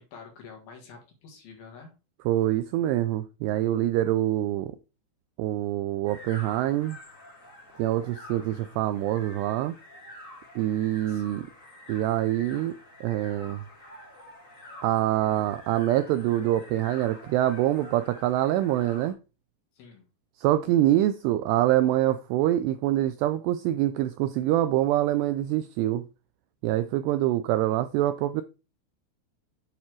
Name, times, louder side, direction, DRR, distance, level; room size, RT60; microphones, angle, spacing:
voice 1, 0.0-1.9 11.1-11.4 19.7-20.1, left 5 dB, 60° left, 3.1 m, -48 dB
voice 2, 2.3-4.8 5.4-7.0 7.8-9.8 10.6-11.5 11.9-13.6 14.8-19.2 20.4-26.1 26.6-28.4, right 13 dB, 90° right, 2.4 m, -25 dB
sound 1, 6.1-19.1, left 1 dB, 25° left, 2.0 m, -47 dB
9.2 x 4.4 x 4.6 m
omnidirectional pair, 5.4 m